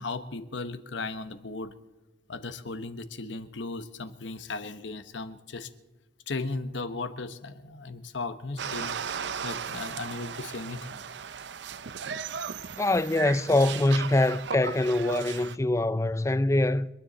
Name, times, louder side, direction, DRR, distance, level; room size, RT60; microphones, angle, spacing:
voice 1, 0.0-1.7 2.3-5.7 6.3-8.9 9.4-11.0, left 3 dB, 80° left, 1.1 m, -36 dB
sound 1, 8.6-15.6, right 7 dB, 65° right, 0.6 m, -36 dB
voice 2, 12.8-16.9, left 2 dB, 15° left, 0.4 m, -24 dB
30.0 x 10.0 x 4.1 m
head